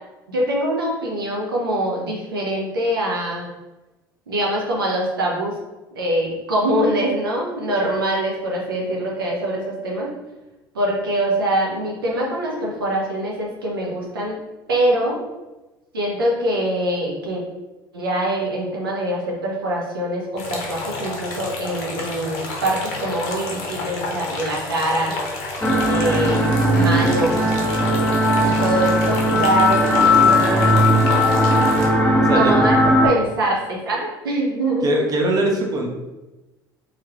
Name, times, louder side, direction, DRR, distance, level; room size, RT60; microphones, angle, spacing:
voice 1, 0.3-3.5 4.3-5.5 5.9-10.1 10.7-14.4 14.7-15.2 15.9-17.4 17.9-25.1 25.9-27.3 28.4-30.8 32.3-34.9, right 1 dB, 85° right, -2 dB, 0.7 m, -23 dB
sound 1, 20.4-31.9, left 2 dB, 65° left, 0.7 m, -30 dB
sound 2, 25.6-33.1, left 1 dB, 10° left, 0.5 m, -17 dB
voice 2, 32.2-32.5 34.8-35.9, right 1 dB, 35° right, 1 dB, 0.8 m, -23 dB
3.2 x 3.0 x 2.4 m, 1.1 s
hypercardioid pair, 70°, 12 cm